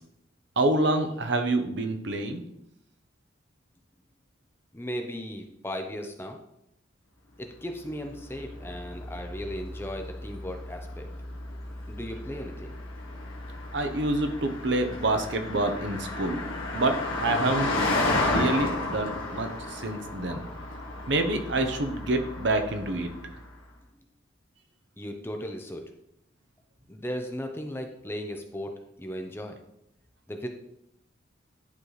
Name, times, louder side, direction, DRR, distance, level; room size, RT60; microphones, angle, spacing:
voice 1, 0.6-2.4 13.7-16.4 16.7-17.7 18.3-20.4 21.1-23.1, right 2 dB, 60° right, 6 dB, 0.8 m, -27 dB
voice 2, 4.7-6.4 7.4-11.1 11.9-12.7 25.0-25.9 26.9-29.6 30.3-30.5, equal, 10° left, 4 dB, 0.5 m, -36 dB
Car passing by, 7.8-23.5, left 2 dB, 80° left, 1.4 m, -33 dB
10.5 x 4.0 x 3.2 m, 0.79 s
head